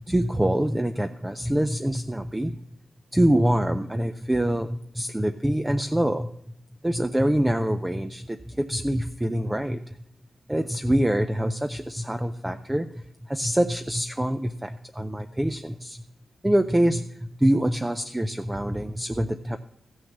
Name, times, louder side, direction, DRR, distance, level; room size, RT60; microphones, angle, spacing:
voice 1, 0.1-2.6 3.1-6.3 6.8-9.9 10.5-12.9 13.2-16.0 16.4-19.6, right 1 dB, 10° right, 9 dB, 0.4 m, -25 dB
15.0 x 6.3 x 7.2 m, 0.76 s
wide cardioid pair, 175°, 0 cm